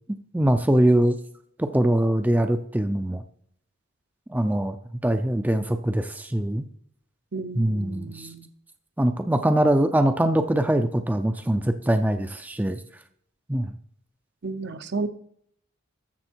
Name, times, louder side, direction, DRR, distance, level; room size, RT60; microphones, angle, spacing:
voice 1, 0.3-1.2 1.6-3.2 4.3-4.8 5.0-6.6 7.6-8.3 9.0-12.8 13.5-13.7, right 1 dB, 10° right, 8 dB, 0.5 m, -22 dB
voice 2, 7.3-8.5 14.4-15.1, right 3 dB, 55° right, 10 dB, 0.8 m, -32 dB
13.5 x 7.5 x 4.5 m, 0.67 s
head